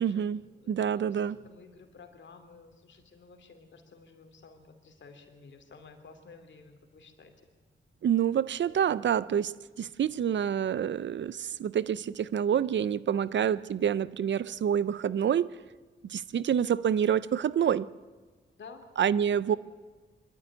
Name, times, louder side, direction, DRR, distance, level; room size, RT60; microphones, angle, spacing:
voice 1, 0.0-0.4 0.7-1.4 8.0-15.5 16.1-17.9 19.0-19.6, right 8 dB, 65° right, 0.6 m, -27 dB
voice 2, 0.6-7.3 8.8-9.0 13.2-13.5 18.6-19.6, left 4 dB, 65° left, 2.6 m, -52 dB
23.0 x 12.5 x 9.6 m
cardioid pair, 70°, 20 cm